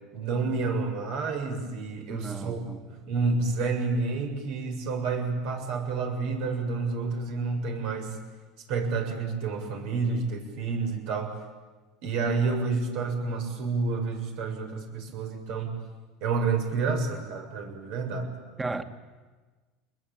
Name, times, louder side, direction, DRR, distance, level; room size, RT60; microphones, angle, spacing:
voice 1, 0.0-2.6 2.9-8.2 8.7-11.3 12.0-15.7 16.2-18.3, right 4 dB, 70° right, 7.4 m, -29 dB
voice 2, 2.1-2.8 18.6-18.8, right 3 dB, 15° right, 2.2 m, -34 dB
29.5 x 21.5 x 9.3 m
supercardioid pair, 105°, 0 cm